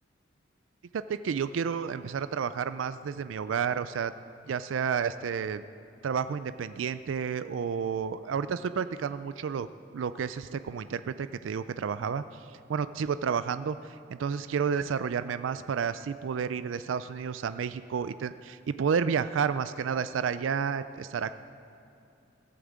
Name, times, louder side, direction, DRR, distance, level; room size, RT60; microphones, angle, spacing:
voice 1, 0.9-4.1 4.5-5.6 6.0-9.7 9.9-21.4, right 6 dB, 90° right, 13 dB, 0.4 m, -31 dB
15.5 x 8.7 x 7.4 m, 2.7 s
head